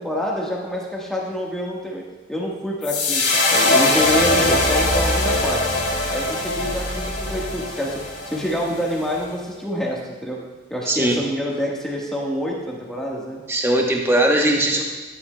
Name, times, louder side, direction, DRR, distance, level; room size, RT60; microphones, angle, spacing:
voice 1, 0.0-2.0 2.3-5.6 6.1-10.4 10.7-13.4, equal, 5° left, -3 dB, 1.3 m, -27 dB
sound 1, 2.8-9.2, left 2 dB, 65° left, 1.7 m, -21 dB
voice 2, 13.5-14.8, right 1 dB, 10° right, 1 dB, 0.9 m, -19 dB
12.0 x 9.9 x 2.2 m, 1.3 s
head